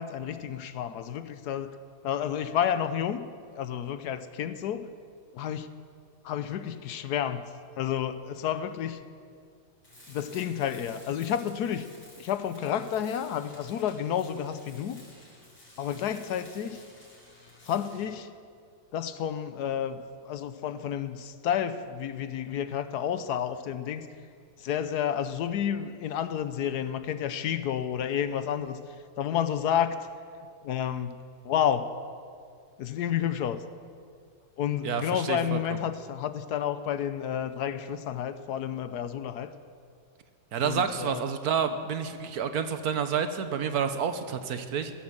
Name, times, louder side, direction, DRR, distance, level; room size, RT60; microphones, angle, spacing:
voice 1, 0.0-1.8 2.0-3.2 3.5-4.9 5.3-5.7 6.2-7.5 7.8-9.0 10.1-11.9 12.2-15.0 15.8-16.8 17.6-18.3 18.9-24.1 24.6-30.1 30.6-31.2 31.4-31.9 32.8-33.6 34.6-39.5 40.6-41.2, left 9 dB, 75° left, 12 dB, 1.3 m, -30 dB
Tools, 9.8-18.2, left 1 dB, 35° left, 4.6 m, -53 dB
voice 2, 34.8-35.6 40.5-44.9, right 7 dB, 70° right, 9 dB, 1.4 m, -29 dB
16.0 x 11.5 x 7.3 m, 2.2 s
omnidirectional pair, 1.8 m